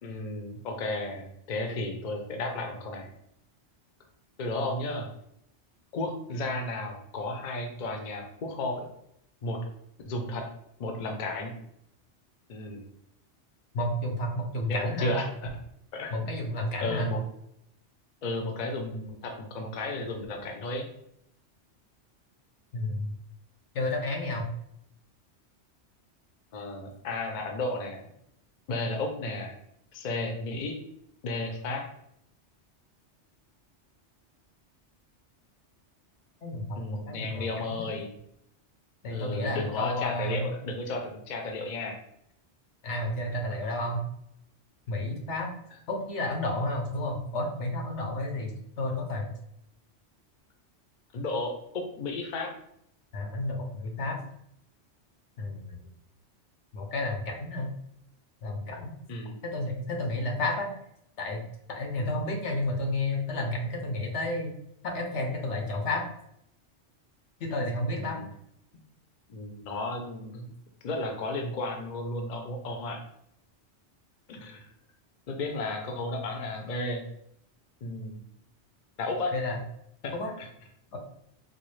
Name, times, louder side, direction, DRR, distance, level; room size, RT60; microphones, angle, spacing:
voice 1, 0.0-3.1 4.4-5.1 5.9-8.9 9.4-9.6 10.0-10.5 10.8-11.5 12.5-12.9 14.7-15.3 15.9-16.3 16.8-17.2 18.2-20.9 26.5-28.0 28.7-29.5 29.9-30.8 31.2-31.8 36.8-38.2 39.1-42.0 51.1-52.5 59.1-59.4 67.9-68.3 68.7-68.8 69.3-70.5 70.8-73.0 74.3-74.7 75.3-77.0 77.8-78.2 79.0-79.3 80.0-80.5, left 2 dB, 50° left, 3 dB, 0.6 m, -33 dB
voice 2, 13.7-15.2 16.1-17.1 22.7-23.1 23.7-24.5 36.4-37.9 39.0-40.5 42.8-44.0 44.9-45.5 45.9-49.3 53.1-54.2 55.4-55.8 56.7-57.7 58.4-58.9 59.4-60.7 61.2-64.5 64.8-66.0 67.4-68.2 79.3-79.6 80.1-80.3 80.9-81.0, left 1 dB, 80° left, 2 dB, 1.1 m, -31 dB
4.0 x 2.3 x 3.1 m, 0.74 s
omnidirectional pair, 1.2 m